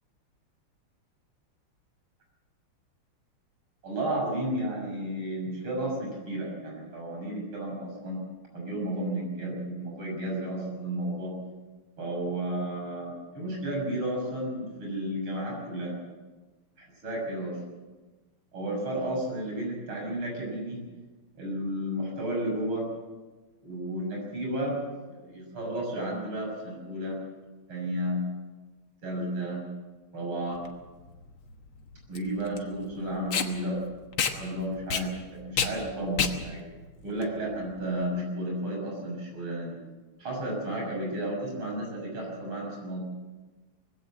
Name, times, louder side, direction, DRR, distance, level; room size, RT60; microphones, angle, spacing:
voice 1, 3.8-8.2 8.5-11.3 12.0-16.0 16.8-17.6 18.5-20.8 21.4-22.9 23.6-24.8 25.1-27.2 27.7-28.2 29.0-29.7 30.1-30.6 32.1-33.8 34.3-36.7 37.0-39.8 40.2-43.0, right 1 dB, 85° right, -1 dB, 7.4 m, -32 dB
Packing tape duct tape, 30.6-38.0, left 6 dB, 85° left, 2.2 m, -32 dB
21.5 x 16.5 x 7.5 m, 1.2 s
omnidirectional pair, 2.3 m